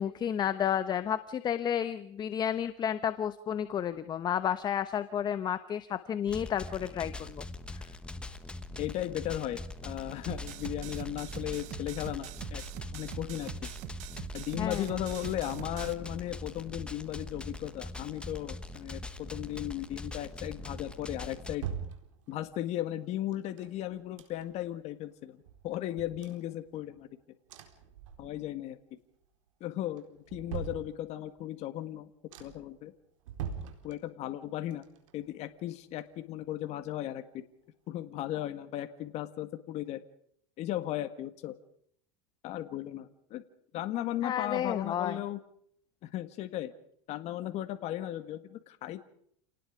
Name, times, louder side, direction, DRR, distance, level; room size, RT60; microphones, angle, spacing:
voice 1, 0.0-7.4 7.7-7.9 14.6-14.8 44.2-45.2, left 9 dB, 25° left, 12 dB, 1.0 m, -31 dB
sound 1, 6.3-21.6, left 2 dB, 5° left, 1.3 m, -42 dB
voice 2, 8.8-12.6 12.9-13.5 14.3-21.7 22.3-27.1 28.2-28.8 29.6-30.1 30.3-32.1 32.4-32.9 33.8-34.8 35.1-37.4 37.9-40.0 40.6-41.6 42.4-43.4 43.7-45.4 46.0-46.7 47.1-49.1, left 13 dB, 45° left, 9 dB, 1.8 m, -36 dB
sound 2, 10.3-15.9, right 16 dB, 50° right, 1.0 m, -43 dB
sound 3, 20.9-22.6 23.3-24.8 25.1-25.2 25.5-27.1 27.5-28.7 29.0-29.5 29.9-31.4 31.9-32.0 32.3-32.8 33.2-34.4 34.7-36.5 36.8-36.9, right 8 dB, 85° right, 4.3 m, -44 dB
28.5 x 19.0 x 5.1 m, 0.66 s
supercardioid pair, 135°, 16 cm